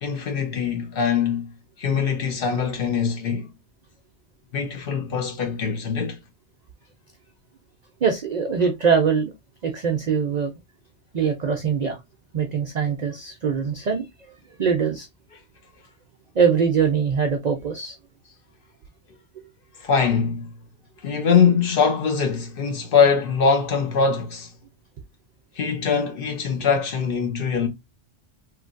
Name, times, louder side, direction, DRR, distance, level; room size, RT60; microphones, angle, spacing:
voice 1, 0.0-3.5 4.5-6.2 19.8-20.5 21.0-24.5 25.6-27.7, left 6 dB, 55° left, 0.8 m, -22 dB
voice 2, 8.0-9.3 9.6-10.5 11.1-12.0 12.3-14.3 14.6-15.1 16.4-18.0, right 6 dB, 65° right, 0.4 m, -22 dB
3.1 x 2.5 x 2.5 m
omnidirectional pair, 1.2 m